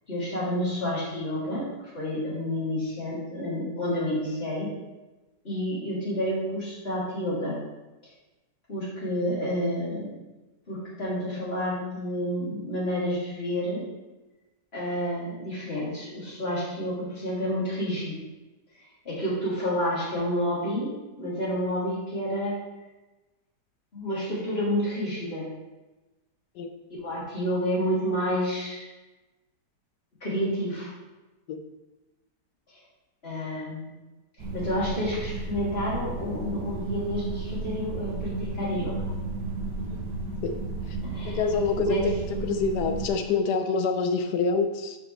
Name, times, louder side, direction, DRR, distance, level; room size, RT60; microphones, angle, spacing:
voice 1, 0.1-4.7 5.4-7.6 8.7-10.1 10.7-13.8 14.7-18.2 19.1-20.9 21.2-22.6 23.9-25.5 27.0-28.8 30.2-30.9 33.2-34.0 34.5-39.1 41.0-41.4 41.8-42.1, equal, 35° left, -8 dB, 3.5 m, -29 dB
sound 1, 34.4-43.1, right 3 dB, 80° right, 1.9 m, -33 dB
voice 2, 41.2-42.1 42.4-45.0, left 4 dB, 80° left, 6 dB, 1.3 m, -26 dB
11.5 x 5.4 x 3.4 m, 1.1 s
omnidirectional pair, 1.8 m